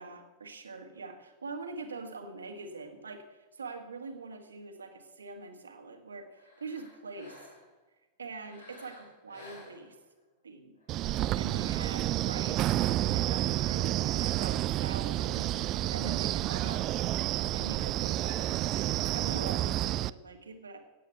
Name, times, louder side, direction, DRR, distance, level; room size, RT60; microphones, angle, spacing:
voice 1, 0.0-7.4 8.2-10.0 10.4-10.8 11.4-16.9 17.5-18.5 19.0-20.8, right 4 dB, 75° right, 6 dB, 1.8 m, -43 dB
sound 1, 6.3-7.8 8.4-10.2 10.8-12.3 13.1-14.7, left 1 dB, 75° left, 4.9 m, -54 dB
Wind, 10.9-20.1, right 14 dB, 35° right, 0.4 m, -30 dB
16.0 x 8.5 x 6.9 m, 1.1 s
figure-of-eight pair, 90°, 0 cm